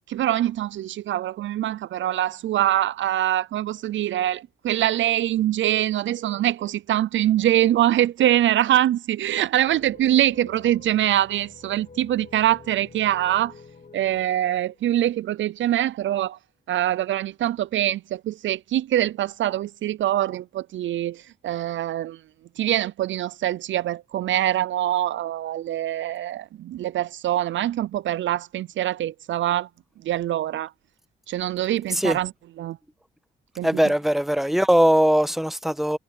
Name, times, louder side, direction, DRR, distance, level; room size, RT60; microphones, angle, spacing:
voice 1, 0.1-13.5 13.9-16.4 16.7-22.2 22.6-29.7 30.0-30.7 31.3-32.3 32.6-32.8 33.6-33.7, right 12 dB, 65° right, 0.6 m, -24 dB
sound 1, 9.7-15.8, left 4 dB, 40° left, 2.6 m, -48 dB
voice 2, 33.6-36.0, equal, ahead, 1.2 m, -20 dB
supercardioid pair, 55°, 21 cm